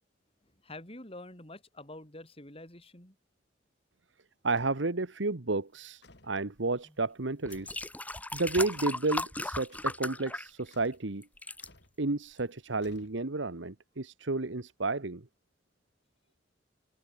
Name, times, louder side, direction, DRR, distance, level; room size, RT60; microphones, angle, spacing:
voice 1, 0.6-3.2, left 1 dB, 30° left, 6.1 m, -47 dB
voice 2, 4.4-7.8 8.3-11.3 12.0-15.2, right 3 dB, 85° right, 1.4 m, -32 dB
sound 1, 4.5-4.9 6.0-6.4 7.5-7.9 8.7-9.1 9.7-10.0 10.7-11.1 11.6-12.0 12.8-13.5, left 2 dB, 65° left, 5.7 m, -58 dB
sound 2, 6.8-6.9 7.5-10.9 11.2-11.7 12.4-12.5, left 2 dB, 10° left, 2.3 m, -36 dB
open air
head